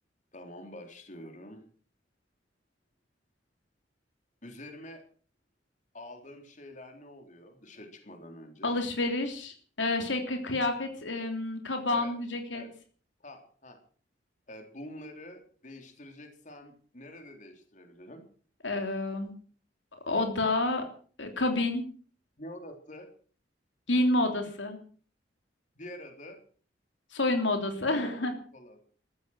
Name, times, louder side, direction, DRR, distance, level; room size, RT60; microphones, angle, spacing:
voice 1, 0.3-1.6 4.4-5.0 5.9-8.7 11.9-12.1 12.5-12.7 13.2-13.8 14.5-18.2 22.4-23.1 25.8-26.4 27.9-28.8, left 1 dB, 45° left, 4 dB, 3.8 m, -46 dB
voice 2, 8.6-12.6 18.6-19.3 20.1-20.9 21.2-21.9 23.9-24.8 27.1-28.3, left 2 dB, 90° left, 5 dB, 3.3 m, -29 dB
15.0 x 14.0 x 6.4 m, 0.44 s
head